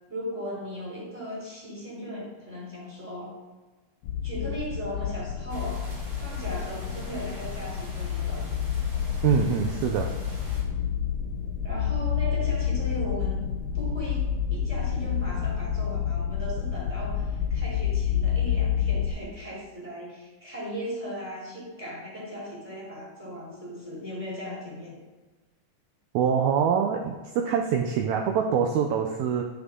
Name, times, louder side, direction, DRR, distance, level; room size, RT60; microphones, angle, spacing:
voice 1, 0.1-3.3 4.2-8.4 11.6-13.4 13.7-25.0, equal, 5° right, -4 dB, 2.9 m, -37 dB
sound 1, 4.0-19.1, left 8 dB, 75° left, 1.9 m, -29 dB
sound 2, 5.5-10.6, equal, 45° right, 2.3 m, -46 dB
voice 2, 9.2-10.2 26.1-29.4, right 7 dB, 75° right, 3 dB, 1.8 m, -24 dB
11.0 x 7.8 x 3.7 m, 1.3 s
omnidirectional pair, 3.6 m